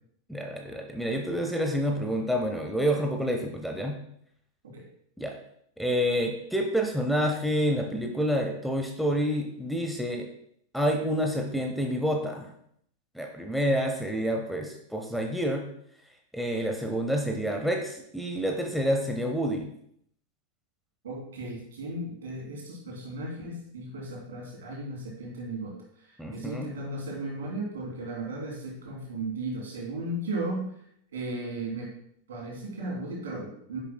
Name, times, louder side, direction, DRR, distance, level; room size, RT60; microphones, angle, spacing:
voice 1, 0.3-3.9 5.2-5.3 5.8-10.3 10.7-12.5 13.1-15.6 16.3-19.7 26.2-26.7, equal, ahead, 1 dB, 0.8 m, -28 dB
voice 2, 21.0-25.8 26.0-30.7 31.1-31.9 32.3-33.8, right 2 dB, 65° right, -2 dB, 3.0 m, -35 dB
9.7 x 6.6 x 2.2 m, 0.69 s
figure-of-eight pair, 90°, 0 cm